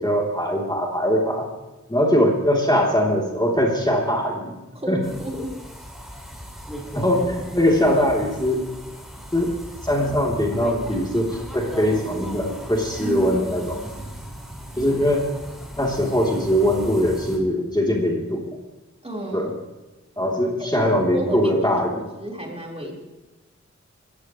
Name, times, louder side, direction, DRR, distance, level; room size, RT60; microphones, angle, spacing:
voice 1, 0.0-1.5 1.9-4.5 4.9-5.0 6.9-8.6 9.3-9.5 9.8-13.9 14.8-15.3 15.8-18.5 19.3-19.5 20.2-21.9, equal, 15° left, -2 dB, 3.2 m, -21 dB
voice 2, 4.7-5.5 13.0-14.0 19.0-19.5 20.7-21.8 22.2-22.9, right 2 dB, 20° right, -2 dB, 4.4 m, -32 dB
sound 1, 5.0-17.4, equal, ahead, 5.2 m, -38 dB
21.0 x 15.0 x 3.2 m, 1.1 s
wide cardioid pair, 45°, 29 cm